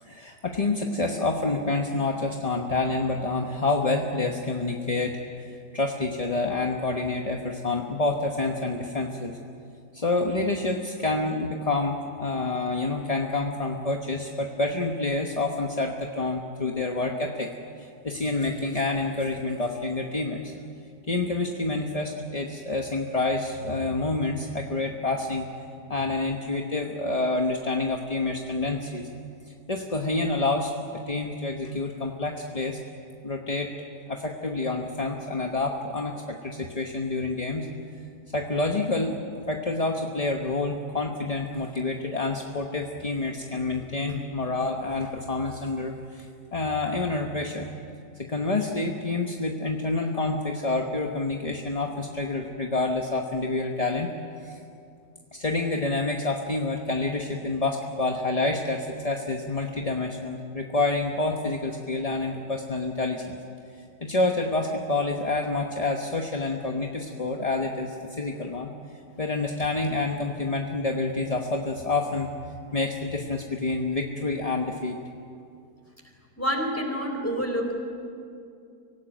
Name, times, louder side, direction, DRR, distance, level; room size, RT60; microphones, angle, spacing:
voice 1, 0.0-9.4 9.9-20.5 21.1-25.5 25.9-29.1 29.7-32.8 33.2-33.7 34.1-37.7 38.3-39.1 39.5-46.3 46.5-47.7 48.2-54.1 54.4-54.6 55.3-63.4 64.0-68.7 69.2-72.4 72.7-75.0, left 3 dB, 25° left, 2 dB, 1.0 m, -28 dB
voice 2, 76.4-77.8, equal, 10° left, 2 dB, 4.0 m, -27 dB
25.0 x 17.5 x 9.2 m, 2.5 s
omnidirectional pair, 1.8 m